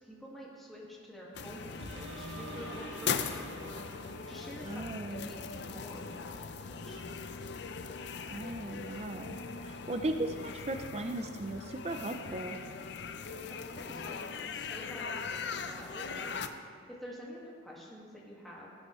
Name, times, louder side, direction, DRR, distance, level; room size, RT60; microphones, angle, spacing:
voice 1, 0.0-7.0 13.5-18.8, equal, ahead, -6 dB, 1.8 m, -48 dB
sound 1, 1.3-16.5, left 5 dB, 60° left, 0.5 m, -40 dB
sound 2, 1.8-4.7 5.2-5.3, right 2 dB, 75° right, 1.5 m, -47 dB
voice 2, 4.6-5.3 8.3-12.6, right 2 dB, 35° right, 6 dB, 0.5 m, -37 dB
18.0 x 8.1 x 3.2 m, 2.1 s
head